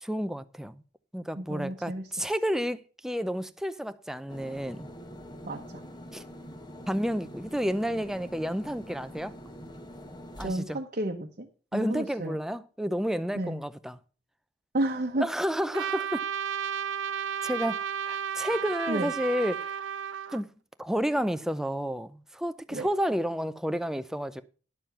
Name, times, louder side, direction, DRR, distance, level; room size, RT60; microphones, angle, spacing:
voice 1, 0.0-0.8 1.1-4.9 6.1-6.2 6.9-9.3 10.4-10.8 11.7-14.0 15.2-16.2 17.4-19.7 20.3-20.5 20.8-24.4, equal, 5° right, 0.5 m, -31 dB
voice 2, 1.4-2.0 5.4-5.6 10.4-11.5 11.7-12.4 13.3-13.6 14.7-15.3 18.9-19.1 22.7-22.9, right 1 dB, 45° right, 1.0 m, -31 dB
sound 1, 4.3-10.5, equal, 25° left, 1.4 m, -45 dB
Trumpet, 15.7-20.4, right 8 dB, 85° right, 0.5 m, -33 dB
11.0 x 6.9 x 5.7 m
head